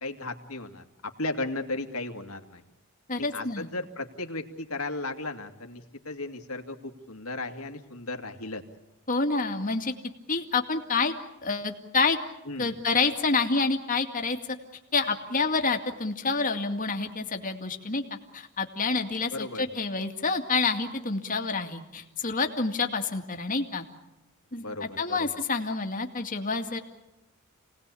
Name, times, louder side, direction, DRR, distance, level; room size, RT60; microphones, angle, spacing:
voice 1, 0.0-2.6 3.1-8.6 12.5-12.7 19.3-19.6 24.6-25.3, left 2 dB, 75° left, 5 dB, 2.3 m, -35 dB
voice 2, 3.1-3.7 9.1-9.9 10.3-11.1 11.4-12.2 12.6-14.4 14.9-18.0 18.3-23.8 24.5-26.8, left 4 dB, 40° left, 5 dB, 2.3 m, -28 dB
28.0 x 19.0 x 8.4 m, 0.97 s
head